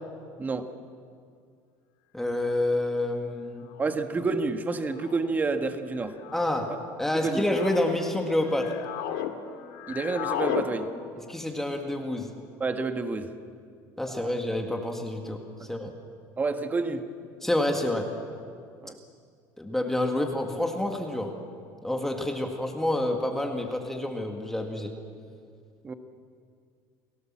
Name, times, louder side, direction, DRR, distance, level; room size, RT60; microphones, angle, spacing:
voice 1, 2.1-3.7 6.3-8.8 11.3-12.3 14.0-15.4 15.7-15.9 17.4-18.1 19.6-21.3 21.8-24.9, left 1 dB, 5° left, 2 dB, 1.8 m, -28 dB
sound 1, 3.7-4.0 4.9-5.3 6.2-6.6 7.3-8.0 8.4-9.3 9.6-10.7, left 12 dB, 80° left, 2.1 m, -34 dB
voice 2, 3.8-6.2 7.2-7.4 9.9-10.9 12.6-13.3 14.0-14.3 16.4-17.0 18.8-19.0 25.8-25.9, right 4 dB, 20° right, 7 dB, 1.5 m, -29 dB
29.5 x 17.5 x 7.4 m, 2.3 s
cardioid pair, 140°, 9 cm